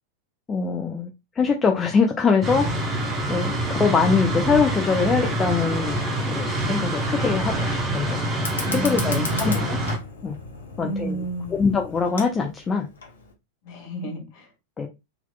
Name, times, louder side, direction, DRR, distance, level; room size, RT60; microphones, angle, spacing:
voice 1, 0.5-1.1 1.4-2.9 3.3-6.0 6.4-7.7 7.9-8.2 8.7-9.8 10.2-10.4 10.8-11.2 11.5-12.9 14.8-14.9, left 5 dB, 20° left, 0.5 m, -23 dB
sound 1, 2.4-10.0, right 1 dB, 25° right, 0.9 m, -26 dB
Fire, 8.3-13.3, left 3 dB, 70° left, 0.7 m, -36 dB
voice 2, 8.6-9.6 10.8-11.6 13.6-14.5, right 2 dB, 45° left, 1.5 m, -32 dB
3.9 x 2.9 x 2.2 m
figure-of-eight pair, 90°, 0 cm